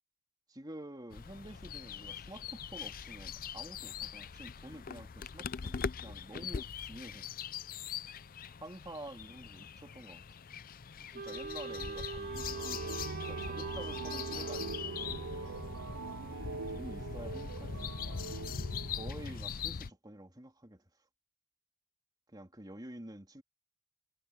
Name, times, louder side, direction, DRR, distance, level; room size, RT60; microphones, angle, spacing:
voice 1, 0.5-7.3 8.6-10.2 11.1-15.6 16.7-18.2 18.9-20.8 22.3-23.4, right 1 dB, 20° right, 3.4 m, -49 dB
sound 1, 1.1-19.9, left 6 dB, 40° left, 0.5 m, -42 dB
Wind instrument woodwind instrument, 11.1-15.8, right 4 dB, 45° right, 2.7 m, -43 dB
sound 2, 12.1-19.7, right 4 dB, 70° right, 0.7 m, -43 dB
head